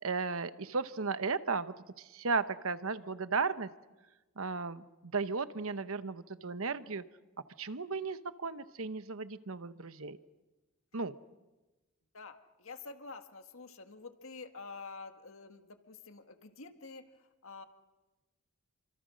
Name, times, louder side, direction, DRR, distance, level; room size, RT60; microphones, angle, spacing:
voice 1, 0.0-3.7 4.4-7.0 7.6-10.2 10.9-11.1, right 4 dB, 75° right, 12 dB, 1.0 m, -35 dB
voice 2, 12.1-17.6, left 4 dB, 70° left, 7 dB, 1.7 m, -48 dB
29.0 x 25.5 x 6.4 m, 1.1 s
head